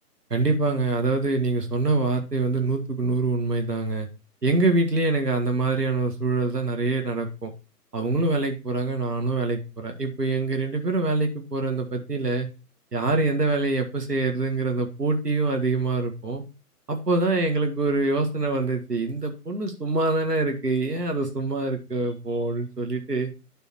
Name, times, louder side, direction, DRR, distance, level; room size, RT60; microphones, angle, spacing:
voice 1, 0.3-4.1 4.4-7.5 7.9-12.5 12.9-16.4 16.9-23.3, right 3 dB, 85° right, 3 dB, 1.9 m, -25 dB
11.0 x 3.9 x 4.4 m, 0.30 s
figure-of-eight pair, 140°, 47 cm